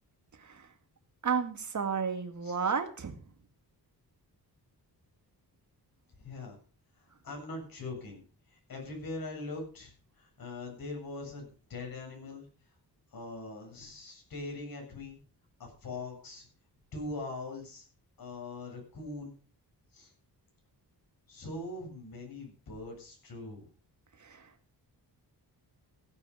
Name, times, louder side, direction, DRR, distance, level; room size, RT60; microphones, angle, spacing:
voice 1, 0.4-0.7 1.2-3.2 24.2-24.5, right 6 dB, 45° right, 7 dB, 2.1 m, -32 dB
voice 2, 6.2-6.6 7.0-12.4 13.1-15.2 15.6-16.5 16.9-17.9 18.2-19.3 19.9-20.1 21.3-23.7, left 2 dB, 60° left, 0 dB, 7.6 m, -42 dB
16.5 x 8.9 x 5.6 m, 0.39 s
wide cardioid pair, 125°, 40 cm